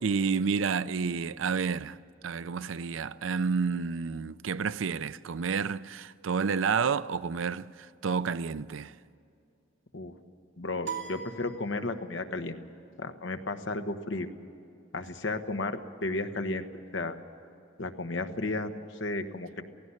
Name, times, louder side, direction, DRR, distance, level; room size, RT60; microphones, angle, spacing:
voice 1, 0.0-8.9, right 5 dB, 85° right, 0.5 m, -30 dB
voice 2, 10.6-12.6 13.0-14.3 14.9-16.7 16.9-17.2 17.8-19.6, left 2 dB, 70° left, 1.2 m, -33 dB
sound 1, 10.8-12.3, right 6 dB, 65° right, 2.8 m, -40 dB
17.0 x 16.0 x 9.7 m
head